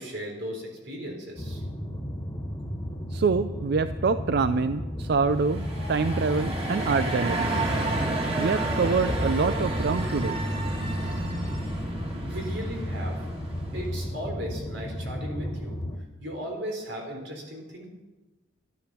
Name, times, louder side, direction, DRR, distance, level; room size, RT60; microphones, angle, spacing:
voice 1, 0.0-1.6 11.9-13.2 13.7-15.8 16.2-17.9, equal, 85° right, 1 dB, 4.1 m, -36 dB
sound 1, 1.4-16.0, equal, 20° left, 1.5 m, -33 dB
voice 2, 3.1-7.6 8.4-10.4, right 4 dB, 60° right, 12 dB, 0.4 m, -26 dB
sound 2, 5.3-14.0, right 2 dB, 30° right, 2.3 m, -32 dB
13.0 x 11.5 x 6.2 m, 1.1 s
head